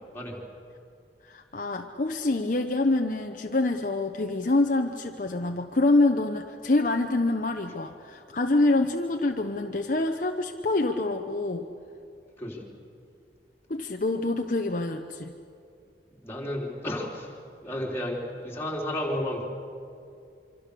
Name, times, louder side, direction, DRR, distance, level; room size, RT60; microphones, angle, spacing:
voice 1, 1.3-11.7 13.7-15.3, left 2 dB, 45° left, 4 dB, 0.9 m, -26 dB
voice 2, 16.2-17.4 17.6-19.4, left 1 dB, 15° left, -2 dB, 3.6 m, -32 dB
26.0 x 25.0 x 6.9 m, 2.5 s
head